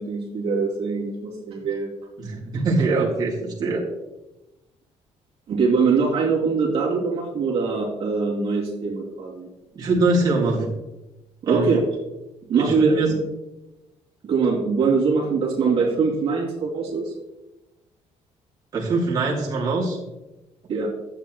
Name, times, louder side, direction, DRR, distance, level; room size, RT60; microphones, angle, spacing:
voice 1, 0.0-1.9 5.5-9.5 11.4-11.8 12.5-13.0 14.2-17.1 20.7-20.9, right 4 dB, 55° right, -4 dB, 2.5 m, -22 dB
voice 2, 2.2-3.8 9.7-10.7 11.5-11.8 12.6-13.1 18.7-20.0, right 3 dB, 35° right, -5 dB, 2.7 m, -23 dB
12.5 x 8.4 x 3.0 m, 1.0 s
cardioid pair, 150°, 12 cm